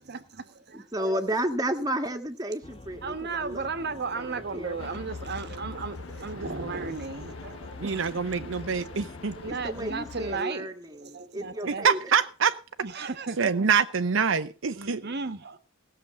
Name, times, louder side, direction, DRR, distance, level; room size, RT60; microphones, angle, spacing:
voice 1, 0.0-0.9 3.0-9.0 9.3-10.7 11.0-11.9 12.8-13.4 14.7-15.6, right 4 dB, 55° right, 1.3 m, -35 dB
voice 2, 0.7-5.0 9.5-12.1, right 1 dB, 20° right, 1.6 m, -33 dB
sound 1, 2.6-9.6, left 2 dB, 30° left, 1.1 m, -48 dB
sound 2, 4.8-10.4, left 4 dB, 80° left, 0.9 m, -42 dB
voice 3, 7.8-9.3 11.8-12.5 13.4-15.0, right 6 dB, 70° right, 0.7 m, -25 dB
17.0 x 7.0 x 7.4 m
head